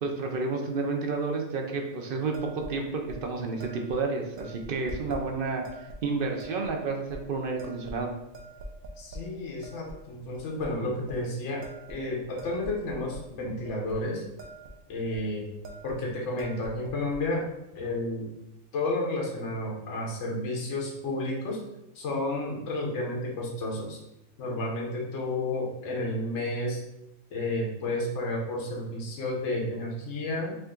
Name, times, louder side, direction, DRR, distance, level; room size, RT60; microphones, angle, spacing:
voice 1, 0.0-8.1, right 4 dB, 55° right, 2 dB, 0.6 m, -31 dB
sound 1, 2.3-2.7 3.1-3.2 3.6-4.0 4.4-5.2 5.6-6.0 6.4-6.7 7.1-7.2 7.6-8.1 8.3-9.2 9.6-10.0 10.3-10.7 11.1-11.2 11.6-13.2 13.6-14.0 14.2-14.7 15.0-15.2 15.6-16.0 16.3-17.2, right 1 dB, 90° right, 1.2 m, -43 dB
voice 2, 9.0-14.2 14.9-15.5 15.8-17.5 17.7-18.3 18.7-21.6 21.9-24.0 24.4-26.8 27.3-30.5, left 2 dB, 65° left, -1 dB, 1.2 m, -31 dB
5.0 x 2.5 x 3.7 m, 0.88 s
omnidirectional pair, 1.4 m